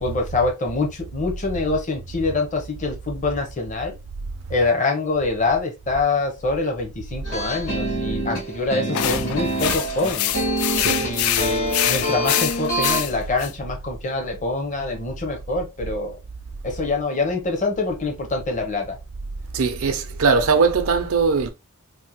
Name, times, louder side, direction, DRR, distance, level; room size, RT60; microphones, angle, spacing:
voice 1, 0.0-4.0 4.5-10.3 11.0-16.2 16.6-19.0, left 3 dB, 35° left, 0.7 m, -25 dB
sound 1, 7.2-13.0, right 1 dB, 65° left, 2.0 m, -26 dB
sound 2, 8.9-13.5, left 11 dB, 85° left, 0.3 m, -25 dB
voice 2, 19.5-21.5, right 5 dB, 80° right, 0.5 m, -20 dB
3.3 x 2.1 x 2.8 m
head